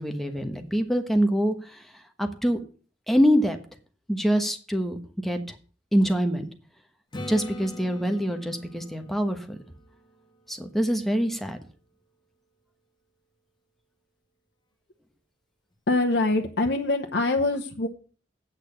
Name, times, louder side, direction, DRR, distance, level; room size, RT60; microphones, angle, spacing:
voice 1, 0.0-1.8 2.2-2.6 3.1-3.6 4.1-5.0 5.2-5.5 5.9-6.5 7.3-9.6 10.5-11.6, equal, ahead, 6 dB, 1.2 m, -25 dB
Acoustic guitar / Strum, 7.1-10.9 15.7-15.8, left 1 dB, 25° left, 1.5 m, -42 dB
voice 2, 15.9-17.9, left 2 dB, 65° left, 2 dB, 1.0 m, -24 dB
8.9 x 6.2 x 8.4 m, 0.40 s
head